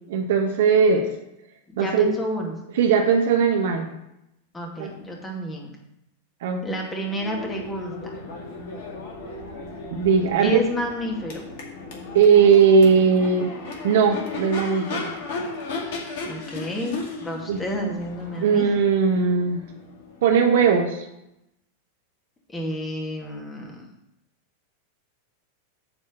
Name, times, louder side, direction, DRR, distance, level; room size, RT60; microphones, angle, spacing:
voice 1, 0.1-1.1 1.8-2.1 2.8-3.9 4.8-4.9 6.4-6.6 9.9-10.6 12.1-13.5 13.8-15.1 17.5-17.6 18.4-19.6 20.2-21.0, right 6 dB, 55° right, 4 dB, 1.1 m, -18 dB
voice 2, 1.7-2.5 4.5-5.7 6.6-8.2 10.4-11.4 16.3-18.7 22.5-23.9, equal, 15° left, 0 dB, 2.2 m, -30 dB
Crowd / Race car auto racing / Accelerating revving vroom, 7.0-20.8, left 3 dB, 55° left, 2.2 m, -36 dB
9.0 x 4.3 x 7.1 m, 0.85 s
figure-of-eight pair, 90°, 0 cm